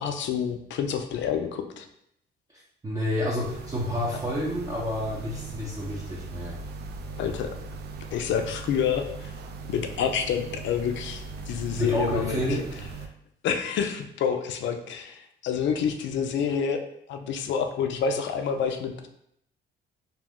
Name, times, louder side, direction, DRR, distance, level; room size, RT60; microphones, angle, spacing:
voice 1, 0.0-1.8 7.2-7.6 8.1-9.3 9.7-12.6 13.4-16.8 17.1-19.1, left 7 dB, 70° left, 6 dB, 0.4 m, -28 dB
voice 2, 2.8-6.6 11.8-12.8, left 1 dB, 15° right, -6 dB, 0.7 m, -29 dB
sound 1, 3.4-13.1, right 4 dB, 55° right, 0.4 m, -39 dB
2.6 x 2.0 x 3.5 m, 0.74 s
cardioid pair, 90°, 20 cm